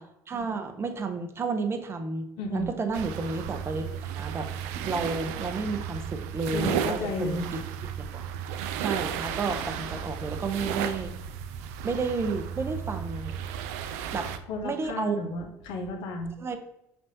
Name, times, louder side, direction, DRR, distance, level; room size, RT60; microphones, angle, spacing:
voice 1, 0.0-7.4 8.1-8.2 8.8-11.1 11.8-13.3 14.1-14.3 14.6-15.2 16.4-16.6, right 4 dB, 30° right, 6 dB, 0.6 m, -31 dB
voice 2, 2.4-2.7 6.5-7.4 14.5-16.3, left 2 dB, 70° left, 4 dB, 0.9 m, -33 dB
sound 1, 2.9-14.4, right 9 dB, 80° right, 0.4 m, -34 dB
5.2 x 3.4 x 2.7 m, 0.83 s
hypercardioid pair, 70°, 8 cm